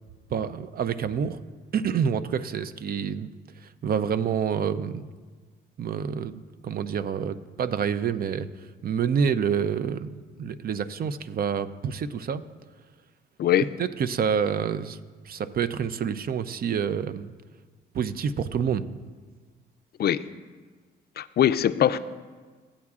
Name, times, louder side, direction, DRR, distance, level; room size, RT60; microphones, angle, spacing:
voice 1, 0.3-1.4 1.7-3.3 3.6-5.1 5.8-8.5 8.8-12.4 13.8-15.0 15.2-17.3 17.9-18.8, right 7 dB, 50° right, 13 dB, 0.5 m, -28 dB
voice 2, 21.2-22.0, left 10 dB, 55° left, 13 dB, 0.4 m, -22 dB
16.0 x 8.5 x 2.4 m, 1.4 s
cardioid pair, 90°, 20 cm